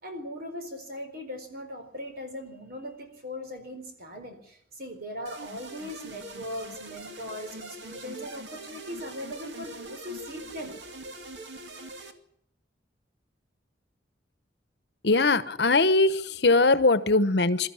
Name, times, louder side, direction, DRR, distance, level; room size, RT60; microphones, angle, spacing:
voice 1, 0.0-10.8, left 1 dB, 55° right, 6 dB, 4.3 m, -39 dB
sound 1, 5.3-12.1, right 2 dB, 75° right, 2.3 m, -43 dB
voice 2, 15.0-17.7, left 3 dB, 65° left, 14 dB, 1.1 m, -21 dB
22.5 x 13.5 x 9.9 m, 0.71 s
head